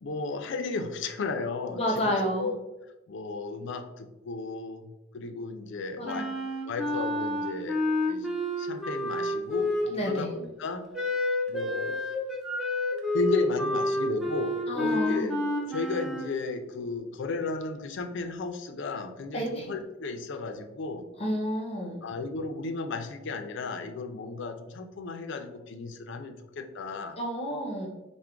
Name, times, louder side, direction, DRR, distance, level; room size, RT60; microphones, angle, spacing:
voice 1, 0.0-2.5 3.1-6.3 6.6-8.3 8.6-10.9 11.5-12.0 13.1-15.4 15.6-21.1 22.0-27.2, left 3 dB, 65° left, 7 dB, 0.4 m, -34 dB
voice 2, 1.7-2.5 6.0-6.3 9.9-10.3 14.7-15.3 19.3-19.7 21.2-22.0 27.2-27.9, equal, 30° left, -1 dB, 0.8 m, -30 dB
Wind instrument woodwind instrument, 6.0-10.2 10.9-16.3, left 1 dB, ahead, 0.5 m, -29 dB
4.5 x 2.1 x 3.6 m, 1.0 s
head